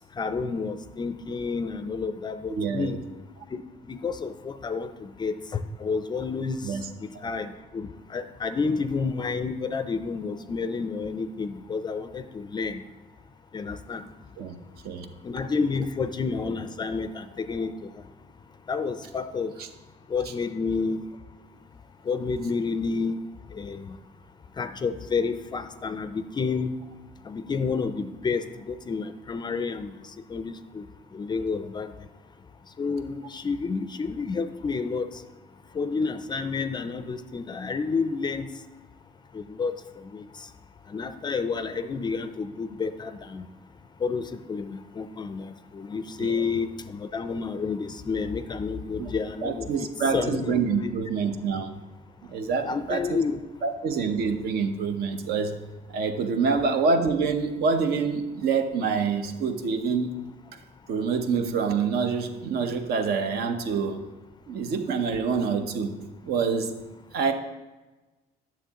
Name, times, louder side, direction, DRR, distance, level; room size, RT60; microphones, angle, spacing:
voice 1, 0.2-3.0 3.5-3.6 3.9-6.6 7.2-12.8 13.5-14.0 15.2-17.7 18.7-19.5 20.1-21.0 22.1-23.2 23.5-24.0 24.6-26.7 27.3-29.9 30.3-30.8 31.1-31.9 32.8-35.1 35.8-38.5 39.3-39.7 40.1-40.2 40.9-43.5 44.0-49.7 50.1-50.5 50.8-50.9 52.7-53.4, left 4 dB, 25° left, 11 dB, 0.4 m, -30 dB
voice 2, 2.5-3.0 6.6-6.9 14.4-14.5 14.8-15.1 46.2-46.4 49.0-49.1 49.4-51.7 52.2-53.2 53.6-55.6 55.9-60.1 60.9-64.0 64.5-65.9 66.2-66.7 67.1-67.3, right 5 dB, 70° right, 7 dB, 0.8 m, -26 dB
9.2 x 7.0 x 2.9 m, 1.1 s
cardioid pair, 110°, 17 cm